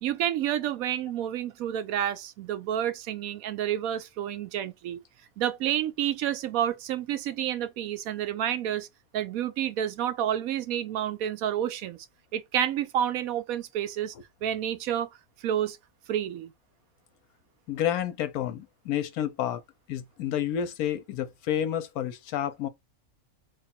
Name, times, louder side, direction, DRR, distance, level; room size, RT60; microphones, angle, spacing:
voice 1, 0.0-5.0 5.4-8.9 9.1-12.0 12.3-14.1 14.4-15.1 15.4-15.8 16.1-16.5, right 10 dB, 75° right, 1.0 m, -29 dB
voice 2, 17.7-19.6 19.9-22.7, left 10 dB, 85° left, 1.1 m, -30 dB
3.2 x 2.4 x 4.3 m
omnidirectional pair, 1.5 m